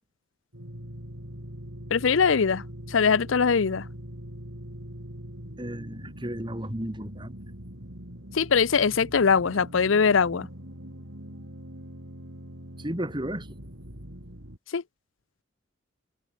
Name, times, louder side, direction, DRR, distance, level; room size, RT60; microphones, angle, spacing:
sound 1, 0.5-14.6, equal, 75° right, 6.7 m, -42 dB
voice 1, 1.9-3.9 8.3-10.5 14.7-14.8, left 5 dB, 75° left, 0.6 m, -22 dB
voice 2, 5.6-7.4 12.8-13.5, right 1 dB, 25° right, 2.3 m, -33 dB
head